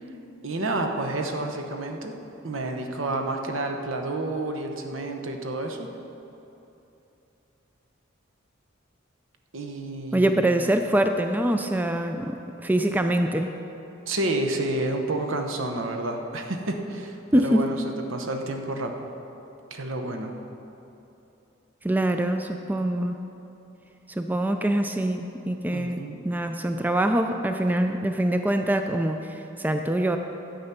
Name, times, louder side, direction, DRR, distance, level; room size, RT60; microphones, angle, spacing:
voice 1, 0.4-2.1 2.4-5.9 9.5-10.5 14.0-19.0 19.7-20.3 25.7-26.2, right 2 dB, 75° right, 4 dB, 1.0 m, -30 dB
voice 2, 10.1-12.4 12.6-13.5 17.3-17.6 21.8-23.1 24.1-30.2, right 1 dB, 10° right, 6 dB, 0.4 m, -24 dB
12.0 x 7.9 x 5.8 m, 3.0 s
head